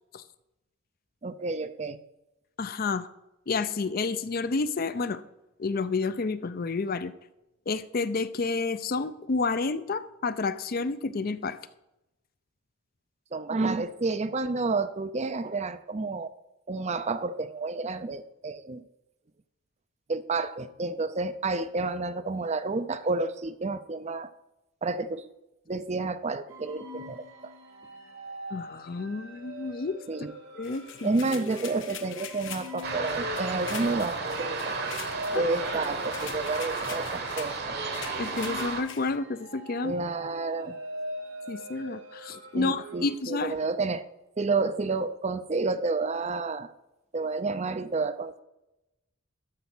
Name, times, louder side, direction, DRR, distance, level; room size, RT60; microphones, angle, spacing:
voice 1, 1.2-2.0 13.3-16.3 16.7-18.8 20.1-24.3 24.8-25.3 25.7-27.5 30.1-30.3 31.0-34.8 35.3-37.8 39.8-40.8 42.5-44.0 44.4-46.7 47.1-48.4, right 3 dB, 30° right, 12 dB, 0.5 m, -30 dB
voice 2, 2.6-3.1 3.5-5.2 5.6-7.1 7.7-11.6 28.5-30.0 30.6-30.8 35.3-35.5 38.2-39.9 41.5-43.6, left 4 dB, 45° left, 13 dB, 0.5 m, -30 dB
sound 1, 26.5-43.2, right 1 dB, 75° right, 2.1 m, -43 dB
sound 2, 30.6-39.2, left 8 dB, 60° left, 0.9 m, -44 dB
sound 3, 32.8-38.8, right 3 dB, 50° right, 1.2 m, -33 dB
12.5 x 5.0 x 6.1 m, 0.92 s
head